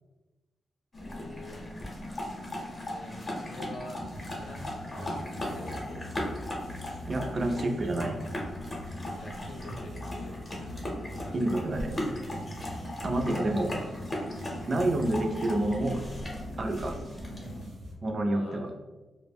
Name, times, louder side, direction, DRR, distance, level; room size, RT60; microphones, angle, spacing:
sound 1, 0.9-17.7, left 1 dB, 20° left, 0.7 m, -37 dB
voice 1, 1.0-1.7 2.9-4.1 4.4-6.2 9.1-10.4 13.3-13.8 18.3-18.7, left 1 dB, 65° left, -1 dB, 0.6 m, -46 dB
sound 2, 4.0-17.9, equal, 75° right, 0.6 m, -43 dB
voice 2, 7.1-8.2 11.3-11.9 13.0-13.7 14.7-16.0 16.6-17.0 18.0-18.7, right 1 dB, 40° right, 4 dB, 0.3 m, -28 dB
2.2 x 2.1 x 3.3 m, 1.2 s
cardioid pair, 115°, 0 cm